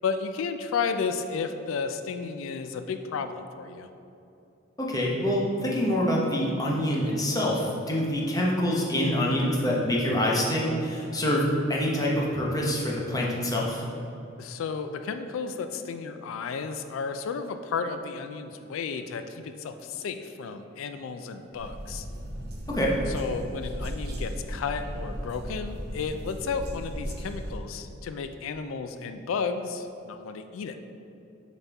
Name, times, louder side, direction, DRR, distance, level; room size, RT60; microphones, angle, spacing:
voice 1, 0.0-3.9 14.4-22.1 23.1-30.8, left 5 dB, 90° left, 8 dB, 0.3 m, -33 dB
voice 2, 4.8-13.8 22.7-23.0, equal, 20° left, -3 dB, 0.8 m, -26 dB
sound 1, 21.5-27.6, equal, 55° right, 0.8 m, -36 dB
7.0 x 4.2 x 3.4 m, 2.7 s
head